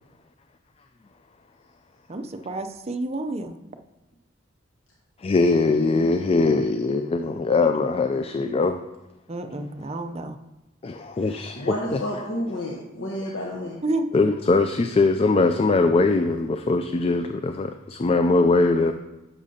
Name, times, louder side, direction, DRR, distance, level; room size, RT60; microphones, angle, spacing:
voice 1, 2.1-3.6 9.3-10.4 13.8-14.1, right 2 dB, 30° right, 8 dB, 0.5 m, -30 dB
voice 2, 5.2-8.8 10.8-12.0 14.1-18.9, left 3 dB, 30° left, 7 dB, 0.3 m, -21 dB
voice 3, 11.1-13.8, left 1 dB, 65° left, -2 dB, 1.1 m, -31 dB
10.0 x 7.2 x 2.8 m, 1.0 s
head